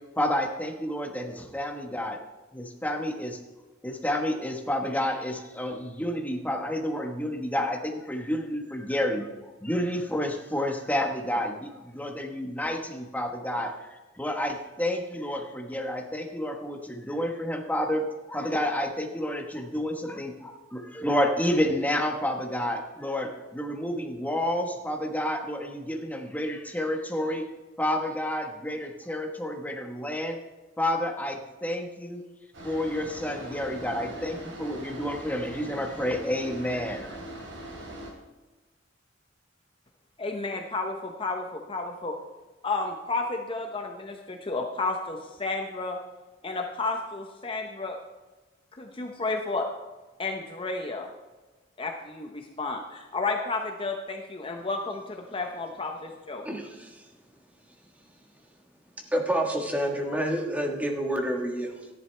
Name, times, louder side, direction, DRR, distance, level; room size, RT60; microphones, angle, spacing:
voice 1, 0.2-2.2 2.5-3.4 3.8-13.8 14.1-27.4 27.8-30.4 30.8-32.2 32.6-37.2, left 1 dB, 10° left, 3 dB, 1.2 m, -30 dB
sound 1, 32.5-38.1, right 1 dB, 85° right, 3.4 m, -41 dB
voice 2, 40.2-42.2 42.6-46.0 46.4-48.0 48.7-49.7 50.2-51.1 51.8-56.5, left 3 dB, 30° left, 3 dB, 0.8 m, -32 dB
voice 3, 56.4-57.1 59.1-61.9, right 1 dB, 10° right, 2 dB, 1.4 m, -29 dB
13.0 x 11.0 x 3.3 m, 1.2 s
head